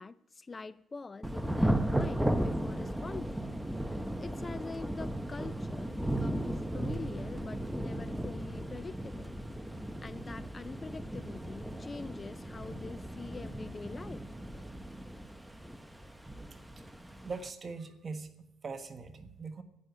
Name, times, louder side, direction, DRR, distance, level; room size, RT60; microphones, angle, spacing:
voice 1, 0.0-3.4 3.8-9.4 10.0-14.2, left 4 dB, 30° left, 0.4 m, -44 dB
Thunder / Rain, 1.2-17.5, right 1 dB, 5° right, 0.9 m, -36 dB
voice 2, 17.2-19.6, right 4 dB, 35° right, 1.4 m, -42 dB
11.0 x 9.7 x 8.0 m
cardioid pair, 90°, 0 cm